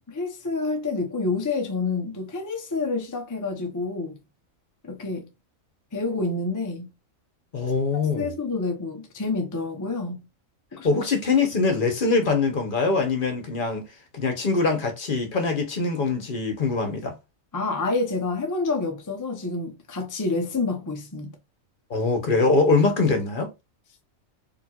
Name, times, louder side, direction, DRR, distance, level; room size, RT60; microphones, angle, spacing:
voice 1, 0.1-4.2 4.8-5.3 5.9-6.9 8.1-10.2 10.7-11.0 17.5-21.4, left 3 dB, 25° left, 0.4 m, -28 dB
voice 2, 7.5-8.3 10.8-13.9 14.1-17.2 21.9-23.5, left 3 dB, 45° left, 1.0 m, -23 dB
4.4 x 2.8 x 2.3 m
omnidirectional pair, 1.4 m